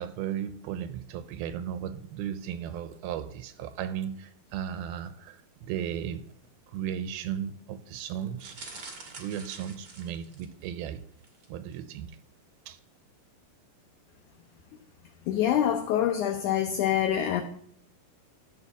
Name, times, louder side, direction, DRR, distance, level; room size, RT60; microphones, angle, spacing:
voice 1, 0.0-6.3 6.7-8.6 9.1-11.0 11.5-12.2 12.7-12.8, right 9 dB, 85° right, 12 dB, 2.5 m, -35 dB
sound 1, 8.4-10.7 11.2-11.5 11.7-11.8, right 3 dB, 55° right, 1.2 m, -46 dB
voice 2, 15.3-17.4, left 10 dB, 85° left, 6 dB, 1.7 m, -25 dB
12.0 x 4.4 x 7.2 m, 0.64 s
omnidirectional pair, 4.4 m